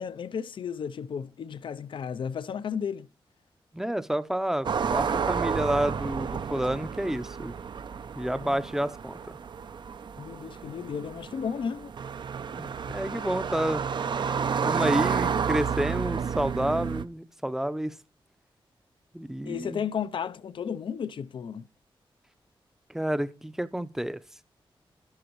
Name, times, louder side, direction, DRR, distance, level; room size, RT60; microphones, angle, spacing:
voice 1, 0.0-3.1 8.3-8.6 10.2-11.9 19.4-21.7, left 7 dB, 65° left, 0.5 m, -33 dB
voice 2, 3.7-4.7 4.9-7.5 8.2-9.2 12.6-13.8 14.6-17.9 19.1-19.8 22.9-24.2, right 1 dB, 5° right, 0.6 m, -29 dB
sound 1, 4.6-17.0, right 6 dB, 55° right, 0.6 m, -31 dB
11.5 x 11.5 x 3.1 m
wide cardioid pair, 135°, 9 cm